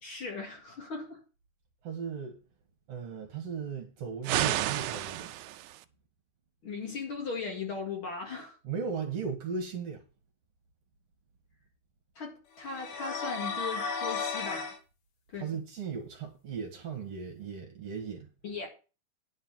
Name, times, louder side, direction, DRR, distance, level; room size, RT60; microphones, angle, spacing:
voice 1, 0.0-1.2 6.6-8.6 12.2-14.7 15.3-15.5 18.4-18.7, left 4 dB, 45° left, 2.7 m, -38 dB
voice 2, 1.8-2.4 2.9-5.3 8.6-10.0 15.3-18.3, right 6 dB, 55° right, 2.5 m, -36 dB
sound 1, 4.2-5.9, right 14 dB, 80° right, 2.0 m, -31 dB
sound 2, 12.6-14.8, left 5 dB, 80° left, 3.0 m, -34 dB
10.0 x 4.4 x 7.2 m
omnidirectional pair, 3.6 m